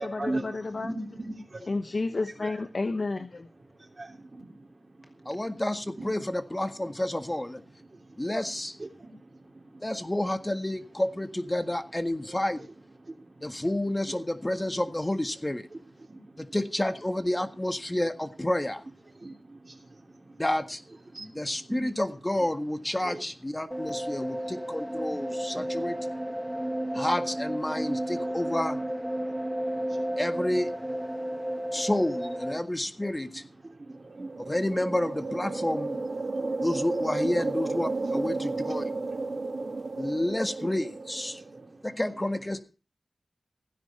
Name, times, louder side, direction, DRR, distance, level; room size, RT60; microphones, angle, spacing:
voice 1, 0.0-0.9 1.7-3.5, left 3 dB, 60° left, 1.0 m, -31 dB
voice 2, 3.9-4.6 8.1-8.2 9.0-9.3 9.6-9.8 13.0-13.1 16.0-16.2 16.5-16.6 19.2-20.0 21.1-21.4 21.7-21.8 23.0-23.2 25.1-25.9 29.8-30.2 31.1-31.2 31.6-31.8 33.6-34.5 36.3-36.7 38.3-38.5 38.8-38.9 39.6-40.0 41.3-41.5 41.9-42.0, right 2 dB, 40° right, 3.2 m, -40 dB
voice 3, 5.2-7.6 8.2-8.7 9.8-12.7 13.4-15.7 16.4-18.8 20.4-20.8 21.2-26.0 26.9-28.8 30.2-30.7 31.7-33.4 34.5-36.0 36.6-38.9 40.0-41.4 41.8-42.6, left 1 dB, 20° left, 1.7 m, -30 dB
sound 1, 23.7-32.6, right 1 dB, 5° right, 1.2 m, -32 dB
sound 2, 34.0-41.6, right 3 dB, 65° right, 1.9 m, -33 dB
16.0 x 10.0 x 4.4 m
wide cardioid pair, 70°, 0 cm